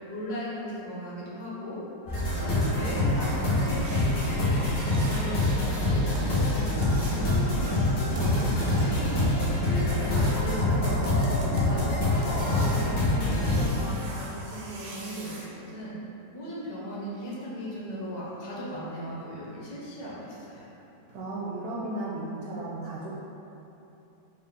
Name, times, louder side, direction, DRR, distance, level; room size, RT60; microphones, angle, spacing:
voice 1, 0.1-1.8 2.3-4.6 5.0-7.9 8.6-9.2 9.6-11.2 11.6-16.0 16.3-20.7, equal, 65° left, -6 dB, 1.3 m, -37 dB
sound 1, 2.1-13.7, left 2 dB, 85° left, 1.8 m, -25 dB
sound 2, 2.2-15.4 17.8-17.9 18.3-18.4 18.9-19.0 19.4-19.5 20.0-20.2 20.5-20.6 21.1-21.2, right 2 dB, 90° right, 1.4 m, -37 dB
voice 2, 8.3-9.4 21.1-23.1, right 2 dB, 70° right, -6 dB, 0.9 m, -36 dB
5.4 x 2.0 x 3.6 m, 2.9 s
omnidirectional pair, 1.9 m